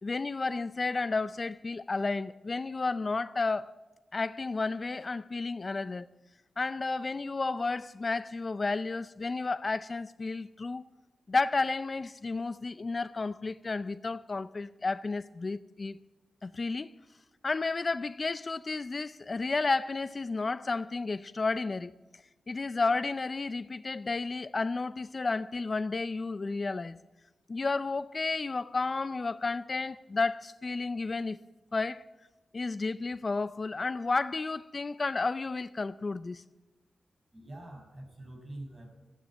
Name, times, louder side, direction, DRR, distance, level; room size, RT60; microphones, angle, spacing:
voice 1, 0.0-3.7 4.1-6.1 6.6-10.8 11.3-16.0 16.4-16.9 17.4-21.9 22.5-27.0 27.5-31.4 31.7-32.0 32.5-36.4, left 3 dB, 45° left, 0.5 m, -32 dB
voice 2, 37.3-39.0, right 1 dB, 40° right, 5.7 m, -45 dB
13.5 x 10.0 x 7.4 m
cardioid pair, 50°, 0 cm